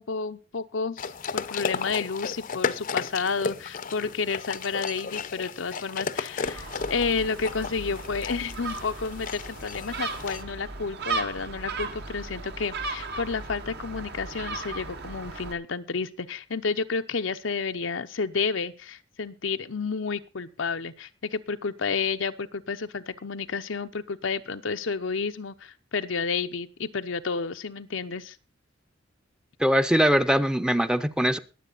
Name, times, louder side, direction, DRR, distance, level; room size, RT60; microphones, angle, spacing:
voice 1, 0.0-28.4, left 5 dB, 90° left, 9 dB, 0.8 m, -31 dB
sound 1, 1.0-10.4, left 5 dB, 45° left, 0.6 m, -34 dB
Gull seagull, 6.4-15.5, right 3 dB, 60° right, 1.3 m, -36 dB
voice 2, 29.6-31.4, equal, 5° right, 11 dB, 0.6 m, -22 dB
22.0 x 7.7 x 4.0 m, 0.32 s
head